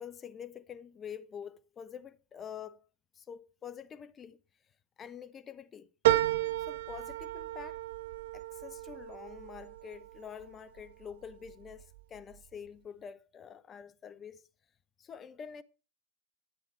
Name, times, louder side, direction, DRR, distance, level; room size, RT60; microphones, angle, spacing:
voice 1, 0.0-2.8 3.1-4.4 5.0-5.9 6.6-7.8 8.3-14.4 15.0-15.6, left 8 dB, 25° left, 0.7 m, -46 dB
sound 1, 6.0-10.8 11.3-12.0 12.4-12.5, right 16 dB, 55° right, 0.4 m, -33 dB
11.5 x 8.3 x 4.6 m
figure-of-eight pair, 90°, 0 cm